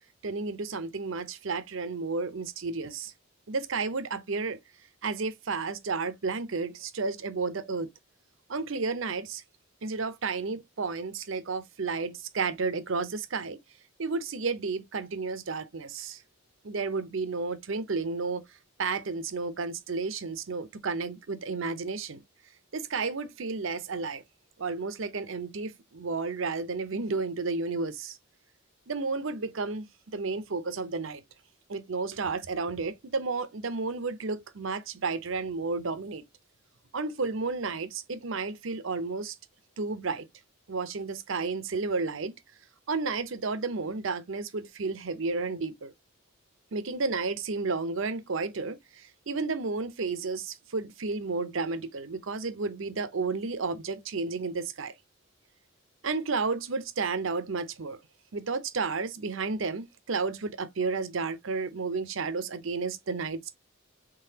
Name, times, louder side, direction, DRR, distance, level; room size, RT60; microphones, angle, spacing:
voice 1, 0.2-3.1 3.5-4.6 5.0-7.9 8.5-9.4 9.8-13.6 14.0-16.2 16.6-18.4 18.8-22.2 22.7-24.2 24.6-28.2 28.9-29.9 30.1-31.2 31.7-36.2 36.9-39.3 39.8-40.3 40.7-42.3 42.9-45.9 46.7-54.9 56.0-58.0 58.3-63.5, right 4 dB, 70° right, 0.7 m, -32 dB
3.9 x 3.2 x 2.7 m
head